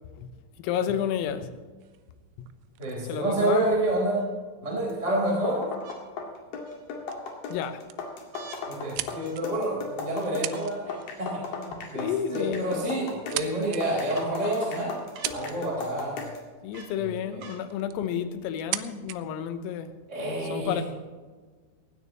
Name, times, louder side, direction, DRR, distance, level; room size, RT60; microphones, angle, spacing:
voice 1, 0.6-1.5 2.4-2.5 3.1-3.7 7.5-7.8 12.0-12.6 16.6-19.9 20.5-20.8, left 9 dB, 85° left, 3.7 m, -30 dB
sound 1, 1.8-1.9 3.6-4.3 5.8-6.0 6.6-7.2 8.3-8.7 9.2-9.8 10.5-11.1 12.0-12.1 13.3-13.5 14.1-14.3 15.1-15.4 16.7-17.0 17.4-17.7 18.5-18.6, right 4 dB, 45° right, 2.8 m, -48 dB
sound 2, 1.8-4.4 5.3-5.4 5.7-6.0 6.5-6.8 7.1-7.2 7.5-8.1 8.6-9.7 10.2-10.8 11.0-11.3 12.4-12.5 13.0-13.8 14.4-14.5 15.0-15.8 17.2-17.3 17.7-18.1 18.5-19.2, right 17 dB, 85° right, 3.2 m, -37 dB
voice 2, 2.8-4.2 4.6-5.6 8.7-14.9 15.3-16.2 17.0-17.4 20.1-20.8, right 1 dB, 15° right, 3.8 m, -29 dB
sound 3, 4.9-16.5, left 4 dB, 55° left, 3.1 m, -37 dB
19.0 x 17.0 x 3.1 m
omnidirectional pair, 5.9 m